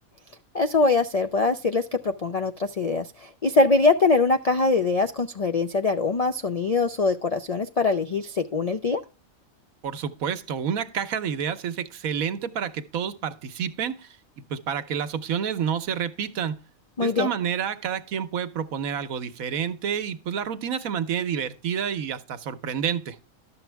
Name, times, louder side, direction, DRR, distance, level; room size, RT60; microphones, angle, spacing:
voice 1, 0.5-9.0 17.0-17.3, left 3 dB, 60° left, 0.4 m, -23 dB
voice 2, 9.8-14.2 14.5-16.6 17.0-23.2, right 8 dB, 85° right, 1.3 m, -29 dB
12.0 x 7.2 x 3.3 m
omnidirectional pair, 1.4 m